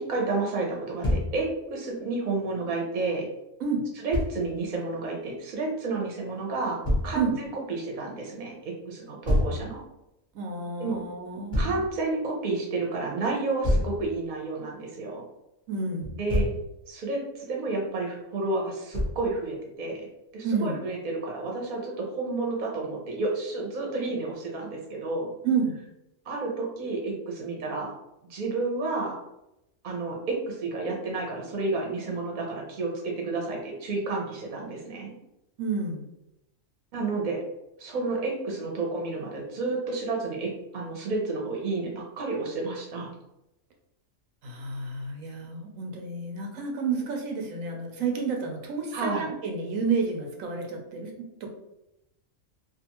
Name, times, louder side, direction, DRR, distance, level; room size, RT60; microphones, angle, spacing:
voice 1, 0.0-3.3 4.0-9.8 10.8-11.0 11.5-15.2 16.2-16.5 16.9-20.1 20.3-25.3 26.3-27.9 28.3-29.2 29.8-35.1 36.9-37.4 37.8-43.1 48.9-49.3, right 3 dB, 45° right, -1 dB, 0.7 m, -31 dB
Thump thud, 1.0-1.3 4.1-4.3 6.8-7.1 9.3-9.6 11.5-11.8 13.6-14.0 16.0-16.6 18.9-19.3, left 1 dB, 30° left, 0.7 m, -25 dB
voice 2, 10.3-11.8 15.7-16.2 20.4-20.8 25.4-25.8 35.6-36.1 44.4-51.5, right 4 dB, 85° right, 2 dB, 1.0 m, -30 dB
2.5 x 2.4 x 2.9 m, 0.87 s
omnidirectional pair, 1.4 m